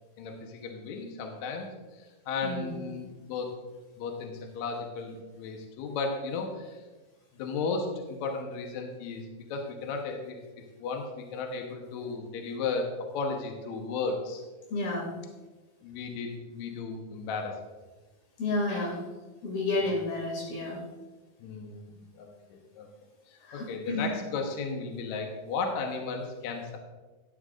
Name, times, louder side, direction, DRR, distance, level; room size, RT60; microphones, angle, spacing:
voice 1, 0.2-1.7 2.3-3.5 4.0-6.8 7.3-9.2 9.5-10.4 10.8-14.4 15.8-17.6 21.4-22.3 22.8-22.9 23.3-26.8, left 4 dB, 65° left, 2 dB, 2.1 m, -34 dB
voice 2, 14.7-15.1 18.4-19.0 19.4-20.8 23.4-24.2, left 2 dB, 85° left, -2 dB, 4.5 m, -31 dB
12.5 x 10.5 x 2.6 m, 1.2 s
omnidirectional pair, 4.2 m